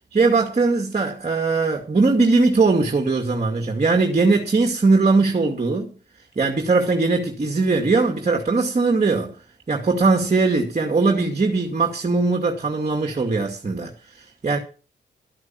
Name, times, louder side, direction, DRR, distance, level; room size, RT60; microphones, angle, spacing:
voice 1, 0.1-5.9 6.4-9.3 9.7-14.6, right 3 dB, 40° right, 2.3 m, -20 dB
13.0 x 6.2 x 9.0 m
cardioid pair, 80°, 18 cm